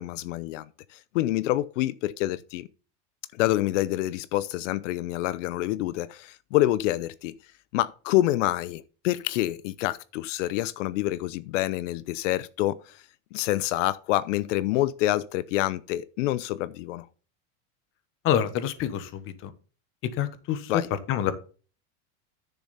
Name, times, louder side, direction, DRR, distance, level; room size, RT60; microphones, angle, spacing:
voice 1, 0.0-2.7 3.3-7.4 7.7-13.0 13.3-17.1 20.7-20.9, left 15 dB, 80° left, 0.7 m, -27 dB
voice 2, 18.2-19.5 20.1-20.8 21.1-21.3, left 10 dB, 35° left, 1.0 m, -27 dB
10.0 x 7.0 x 4.1 m
supercardioid pair, 160°, 36 cm